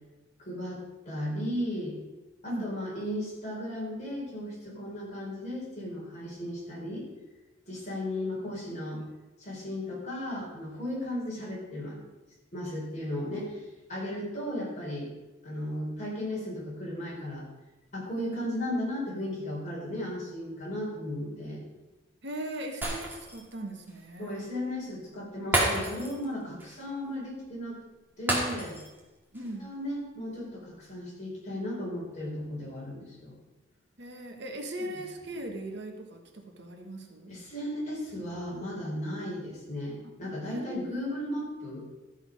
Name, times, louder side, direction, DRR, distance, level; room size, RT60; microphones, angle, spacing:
voice 1, 0.4-2.0 2.4-7.1 7.7-9.0 9.4-12.0 12.5-15.1 15.4-17.4 17.9-21.6 24.2-27.8 28.2-28.8 29.6-33.4 34.8-34.9 37.3-41.9, left 1 dB, 35° left, -4 dB, 4.3 m, -35 dB
voice 2, 22.2-24.5 29.3-29.7 34.0-37.4 40.0-40.1 40.5-40.9, right 1 dB, 55° right, 3 dB, 1.3 m, -39 dB
Shatter, 22.8-23.5 23.9-24.0 25.5-26.3 26.6-26.8 28.3-29.0 29.3-29.5, right 1 dB, 10° right, 2.2 m, -30 dB
13.0 x 7.3 x 5.3 m, 1.1 s
head